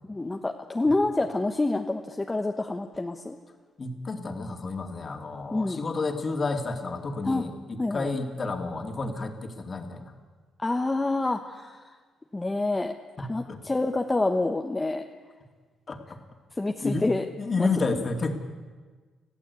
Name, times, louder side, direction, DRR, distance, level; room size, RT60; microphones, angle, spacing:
voice 1, 0.1-3.4 5.5-5.8 7.2-7.4 7.8-8.1 10.6-11.9 12.3-15.0 16.6-17.2 17.6-18.1, left 2 dB, 15° left, 4 dB, 1.1 m, -27 dB
voice 2, 3.8-10.0 13.2-13.6 15.9-16.0 16.8-17.1 17.4-18.4, left 3 dB, 35° left, 4 dB, 2.6 m, -30 dB
21.5 x 14.5 x 8.4 m, 1.4 s
cardioid pair, 90°, 0 cm